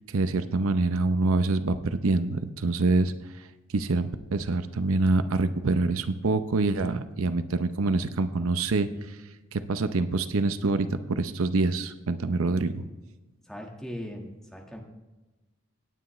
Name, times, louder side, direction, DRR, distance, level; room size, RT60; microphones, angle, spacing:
voice 1, 0.1-3.1 3.7-9.2 9.5-12.8, right 3 dB, 75° right, 10 dB, 0.7 m, -26 dB
voice 2, 13.5-14.8, equal, 5° left, 0 dB, 1.5 m, -39 dB
17.5 x 9.6 x 3.1 m, 1.1 s
head